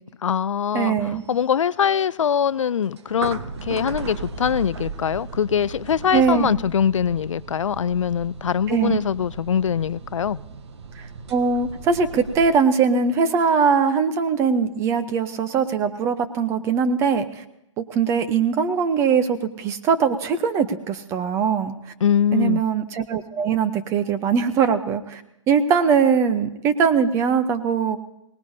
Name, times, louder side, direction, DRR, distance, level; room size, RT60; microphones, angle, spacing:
voice 1, 0.2-10.4 22.0-22.6, left 8 dB, 80° left, 19 dB, 0.4 m, -23 dB
voice 2, 0.7-1.2 6.1-6.5 8.7-9.0 11.3-17.4 17.8-21.8 22.3-25.2 25.5-28.0, right 6 dB, 15° right, 10 dB, 0.7 m, -21 dB
sound 1, 1.2-12.5, right 4 dB, 60° right, 1.2 m, -37 dB
22.5 x 19.0 x 2.7 m, 0.83 s
hypercardioid pair, 145°, 16 cm